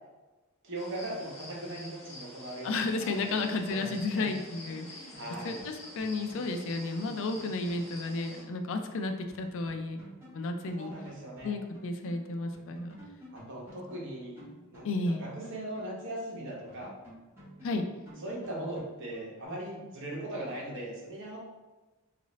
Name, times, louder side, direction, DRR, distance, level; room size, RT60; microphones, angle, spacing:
voice 1, 0.6-4.3 5.1-5.6 10.8-11.5 13.3-14.4 14.7-16.9 18.2-21.4, right 1 dB, 60° right, -3 dB, 1.0 m, -39 dB
sound 1, 0.7-8.4, left 1 dB, 30° left, 0.8 m, -48 dB
voice 2, 2.6-5.2 5.4-10.0 10.3-10.9 11.4-13.0 14.8-15.3 17.6-17.8, left 3 dB, 65° left, 6 dB, 0.4 m, -33 dB
sound 2, 3.3-8.6 8.8-8.9 9.3-12.2 12.5-16.3 16.7-19.4, equal, 10° right, 1.4 m, -51 dB
3.9 x 2.5 x 3.1 m, 1.1 s
head